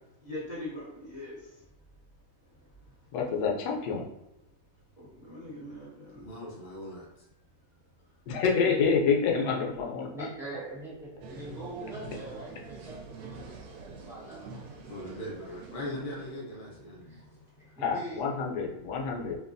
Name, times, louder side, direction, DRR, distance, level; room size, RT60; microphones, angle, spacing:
voice 1, 0.2-1.5 5.0-6.3, left 1 dB, 30° left, 1.4 m, -41 dB
voice 2, 3.1-4.1 8.3-10.1 17.8-19.4, left 5 dB, 85° left, 1.1 m, -27 dB
voice 3, 6.1-7.1 14.9-17.4, left 1 dB, 55° left, 0.5 m, -40 dB
voice 4, 9.3-14.5 17.0-17.2 17.8-18.2, right 2 dB, ahead, 0.7 m, -43 dB
sound 1, 11.2-16.4, right 4 dB, 80° right, 1.1 m, -45 dB
2.9 x 2.2 x 2.5 m
omnidirectional pair, 1.7 m